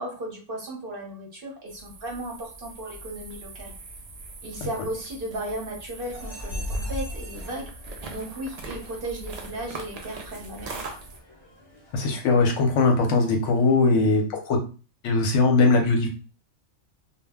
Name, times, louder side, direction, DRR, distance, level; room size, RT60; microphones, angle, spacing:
voice 1, 0.0-3.7 4.4-7.7 8.1-10.8, right 1 dB, 50° right, -1 dB, 0.9 m, -35 dB
sound 1, 1.7-11.2, right 3 dB, 70° right, 0.3 m, -42 dB
sound 2, 6.1-13.0, left 1 dB, 35° left, 0.4 m, -39 dB
voice 2, 11.9-14.6 15.0-16.1, left 3 dB, 75° left, 3 dB, 0.9 m, -20 dB
2.3 x 2.0 x 3.4 m, 0.35 s
omnidirectional pair, 1.3 m